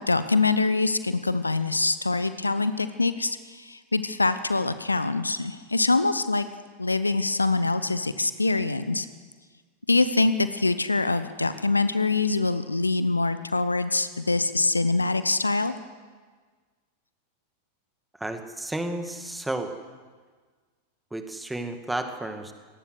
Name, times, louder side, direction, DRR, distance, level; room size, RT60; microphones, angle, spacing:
voice 1, 0.0-6.5 6.8-9.1 9.9-15.7, left 3 dB, 80° left, 13 dB, 0.9 m, -24 dB
voice 2, 18.2-19.7 21.1-22.5, right 1 dB, 5° right, 7 dB, 2.1 m, -32 dB
24.0 x 18.5 x 6.5 m, 1.5 s
figure-of-eight pair, 90°, 0 cm